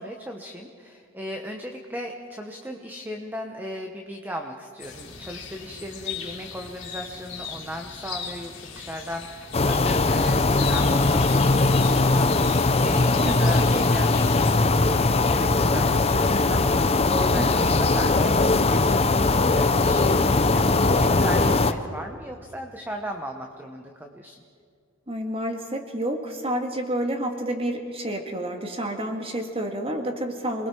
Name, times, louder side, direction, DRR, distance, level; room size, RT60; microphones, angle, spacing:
voice 1, 0.0-24.4, equal, 10° right, 3 dB, 1.0 m, -37 dB
sound 1, 4.8-14.6, left 6 dB, 60° left, 3.5 m, -38 dB
sound 2, 9.5-21.7, left 3 dB, 30° left, 0.7 m, -20 dB
voice 2, 25.1-30.7, right 1 dB, 30° right, 4 dB, 2.1 m, -29 dB
28.0 x 21.0 x 4.6 m, 2.2 s
head